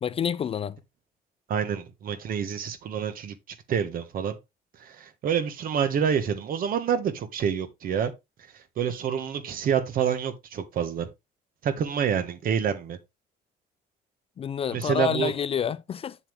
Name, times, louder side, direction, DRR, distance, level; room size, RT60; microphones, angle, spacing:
voice 1, 0.0-0.8 14.4-16.2, left 8 dB, 35° left, 0.4 m, -28 dB
voice 2, 1.5-4.4 4.8-8.1 8.5-11.1 11.6-13.0 14.7-15.3, right 7 dB, 60° right, 1.4 m, -27 dB
7.3 x 7.1 x 3.4 m
cardioid pair, 110°, 17 cm